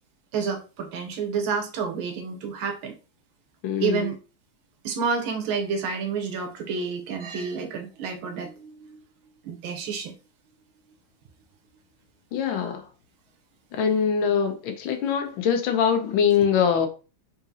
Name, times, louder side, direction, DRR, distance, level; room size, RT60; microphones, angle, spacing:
voice 1, 0.3-2.9 3.8-4.1 4.8-9.0 9.4-10.1, right 5 dB, 85° right, 1.7 m, -29 dB
voice 2, 3.6-4.1 12.3-12.8 13.7-16.9, left 7 dB, 80° left, 1.4 m, -23 dB
3.9 x 3.7 x 2.7 m
omnidirectional pair, 2.2 m